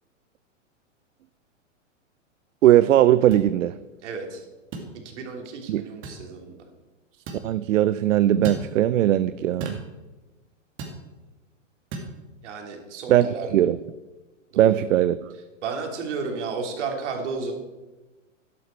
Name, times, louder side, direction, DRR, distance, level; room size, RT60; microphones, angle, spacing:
voice 1, 2.6-3.7 5.7-5.8 7.4-9.8 13.1-13.8 14.6-15.2, right 12 dB, 80° right, 14 dB, 0.6 m, -19 dB
sound 1, 3.3-3.5 4.7-4.9 6.0-6.2 7.3-7.5 8.4-8.7 9.6-9.9 10.8-11.0 11.9-12.1, right 3 dB, 30° right, 2.3 m, -34 dB
voice 2, 4.0-4.4 5.0-6.6 12.4-13.7 14.5-14.9 15.6-17.5, right 4 dB, 65° right, 2 dB, 3.1 m, -33 dB
12.5 x 11.0 x 4.4 m, 1.1 s
hypercardioid pair, 130°, 38 cm